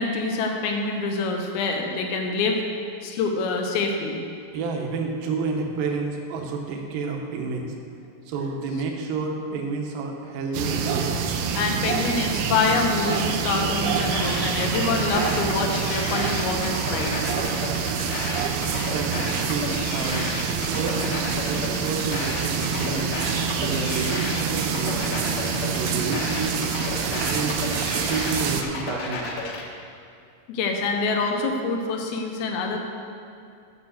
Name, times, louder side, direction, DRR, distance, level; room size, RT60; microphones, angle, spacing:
voice 1, 0.0-2.6 3.0-4.2 11.5-17.3 30.5-32.8, left 3 dB, 80° left, 2 dB, 2.9 m, -26 dB
voice 2, 4.5-7.7 8.3-11.1 18.7-23.1 23.6-25.2 25.7-26.6 27.0-27.6 27.9-29.3, right 4 dB, 70° right, 2 dB, 2.5 m, -30 dB
sound 1, 10.5-28.6, right 6 dB, 85° right, 2.6 m, -27 dB
sound 2, 13.6-29.6, left 3 dB, 65° left, 2.2 m, -32 dB
8.2 x 6.6 x 6.4 m, 2.4 s
omnidirectional pair, 4.4 m